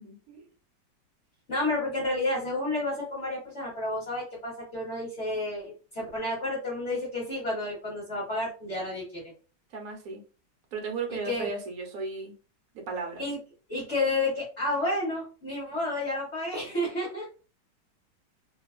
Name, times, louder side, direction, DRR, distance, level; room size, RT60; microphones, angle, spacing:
voice 1, 0.0-0.5 9.7-10.2 10.7-12.3 12.7-13.2, right 4 dB, 60° right, 2 dB, 1.1 m, -35 dB
voice 2, 1.5-9.3 11.1-11.5 13.2-13.4 13.7-17.3, left 2 dB, 45° left, -5 dB, 1.2 m, -31 dB
2.9 x 2.3 x 2.3 m, 0.35 s
omnidirectional pair, 1.9 m